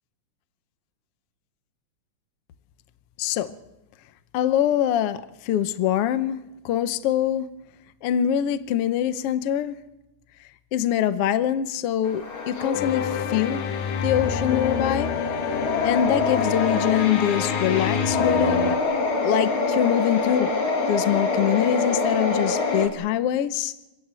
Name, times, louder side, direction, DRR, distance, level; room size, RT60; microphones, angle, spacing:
voice 1, 3.2-3.5 4.3-6.4 6.6-7.5 8.0-9.8 10.7-13.6 14.0-15.1 15.8-18.7 19.2-20.5 20.9-23.7, left 10 dB, 65° left, 12 dB, 1.6 m, -24 dB
sound 1, 12.0-22.9, left 3 dB, 45° left, 3.1 m, -26 dB
sound 2, 12.7-18.8, left 7 dB, 80° left, 2.5 m, -28 dB
26.5 x 17.5 x 7.6 m, 0.99 s
omnidirectional pair, 3.4 m